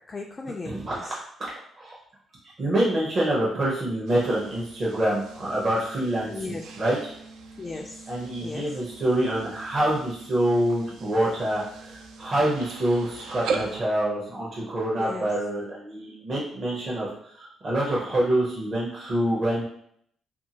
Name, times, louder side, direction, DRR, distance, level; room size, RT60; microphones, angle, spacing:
voice 1, 0.1-1.1 6.3-6.6 7.6-8.8 15.0-15.3, left 3 dB, 30° left, 1 dB, 0.3 m, -37 dB
voice 2, 0.6-1.2 1.8-2.0 2.6-7.0 8.1-19.6, right 1 dB, 40° right, -6 dB, 0.8 m, -26 dB
sound 1, 4.1-13.8, right 4 dB, 85° right, 0.4 m, -39 dB
2.7 x 2.7 x 2.8 m, 0.67 s
cardioid pair, 90°, 0 cm